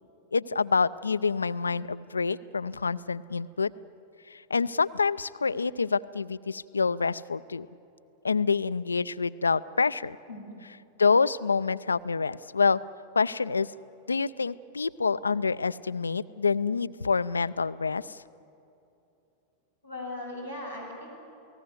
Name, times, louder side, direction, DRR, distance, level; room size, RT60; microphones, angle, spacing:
voice 1, 0.3-3.7 4.3-7.7 8.2-10.2 10.6-12.8 13.2-13.7 14.1-18.2, left 5 dB, 75° left, 17 dB, 0.5 m, -27 dB
voice 2, 19.8-21.2, left 1 dB, 85° right, -2 dB, 7.7 m, -38 dB
29.0 x 19.0 x 7.9 m, 2.8 s
figure-of-eight pair, 90°, 0 cm